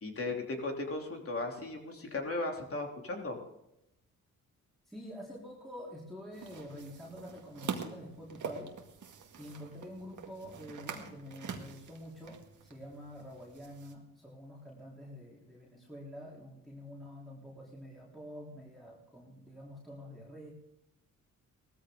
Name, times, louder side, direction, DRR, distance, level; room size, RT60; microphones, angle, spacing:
voice 1, 0.0-3.4, left 2 dB, 45° left, 2 dB, 3.3 m, -36 dB
voice 2, 4.9-8.8 9.4-20.5, equal, ahead, -5 dB, 3.9 m, -47 dB
sound 1, 6.3-13.9, right 6 dB, 65° right, 2.0 m, -45 dB
18.0 x 14.0 x 3.9 m, 0.86 s
cardioid pair, 80°, 32 cm